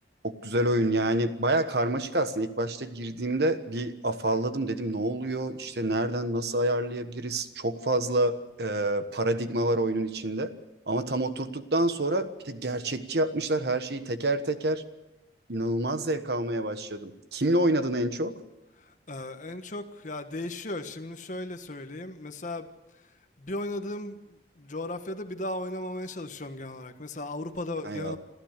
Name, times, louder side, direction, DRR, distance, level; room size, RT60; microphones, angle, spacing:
voice 1, 0.2-10.5 10.9-14.8 15.5-18.4 27.8-28.1, right 1 dB, 65° right, 1.4 m, -28 dB
voice 2, 18.7-28.2, left 1 dB, 45° left, 1.4 m, -36 dB
27.0 x 14.5 x 6.7 m
head